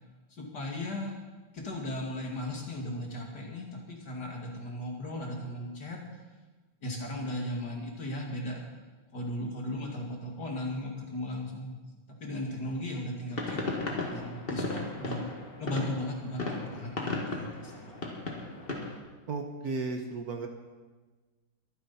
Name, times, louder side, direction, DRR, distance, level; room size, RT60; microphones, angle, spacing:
voice 1, 0.3-1.1 1.5-6.0 6.8-8.6 9.1-11.8 12.2-15.3 15.6-17.9, left 1 dB, 55° left, 0 dB, 2.8 m, -36 dB
sound 1, 13.3-19.0, left 2 dB, 30° left, 2.0 m, -35 dB
voice 2, 19.3-20.5, right 3 dB, 55° right, 5 dB, 1.3 m, -34 dB
23.0 x 9.7 x 4.2 m, 1.3 s
omnidirectional pair, 2.2 m